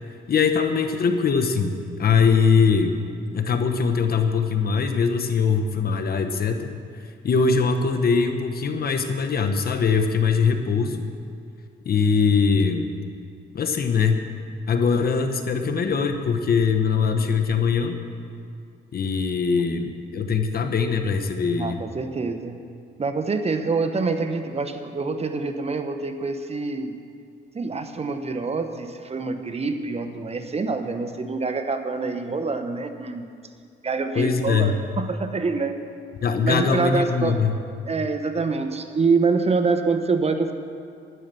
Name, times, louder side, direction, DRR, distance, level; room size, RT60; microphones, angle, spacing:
voice 1, 0.3-3.0 3.3-11.0 11.8-12.9 13.5-14.3 14.7-18.0 18.9-21.8 34.1-34.8 36.2-37.5, left 5 dB, 50° left, 6 dB, 1.1 m, -22 dB
voice 2, 21.5-22.6 23.0-27.0 27.5-33.3 33.8-35.7 36.4-37.4 37.9-40.5, right 4 dB, 30° right, 7 dB, 1.0 m, -26 dB
11.0 x 10.5 x 6.9 m, 2.3 s
cardioid pair, 90°, 20 cm